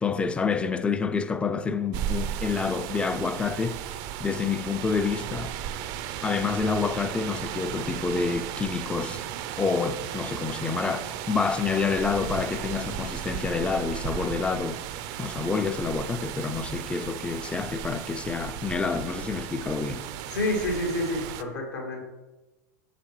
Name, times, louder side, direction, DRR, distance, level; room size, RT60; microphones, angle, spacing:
voice 1, 0.0-3.8 4.2-5.5 6.2-9.2 9.6-14.8 15.2-20.1, left 5 dB, 10° left, 0.4 m, -28 dB
sound 1, 1.9-21.4, right 10 dB, 50° right, 0.4 m, -35 dB
voice 2, 20.3-22.0, left 1 dB, 85° left, 2.2 m, -28 dB
7.1 x 6.6 x 3.2 m
hypercardioid pair, 115°, 9 cm